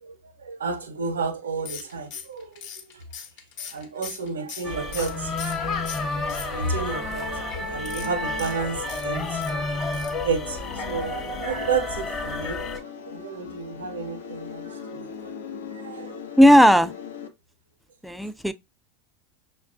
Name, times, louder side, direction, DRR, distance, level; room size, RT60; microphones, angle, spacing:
voice 1, 0.0-3.0 3.7-5.3 6.2-9.5 10.2-15.3 15.7-16.1, right 5 dB, 90° right, 0.6 m, -31 dB
sound 1, 1.7-5.6 5.9-6.9 7.8-9.5 9.9-10.2 10.5-10.6 10.9-11.0, left 7 dB, 65° left, 0.9 m, -39 dB
sound 2, 4.6-12.8, left 2 dB, 35° left, 1.0 m, -30 dB
sound 3, 10.4-17.3, left 6 dB, 90° left, 0.7 m, -39 dB
voice 2, 16.4-16.9 18.0-18.5, equal, ahead, 0.3 m, -15 dB
5.7 x 2.2 x 2.5 m
hypercardioid pair, 90°, 0 cm